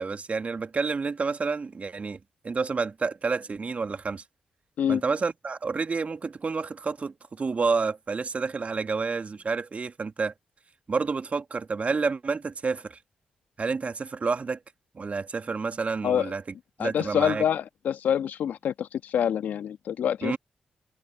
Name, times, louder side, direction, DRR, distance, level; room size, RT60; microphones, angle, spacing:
voice 1, 0.0-2.2 2.4-4.2 4.9-10.3 10.9-13.0 13.6-14.6 14.9-16.4 16.8-17.4 20.2-20.4, right 4 dB, 50° right, 1.9 m, -29 dB
voice 2, 16.8-20.4, left 9 dB, 80° left, 1.5 m, -26 dB
supercardioid pair, 40°, 3 cm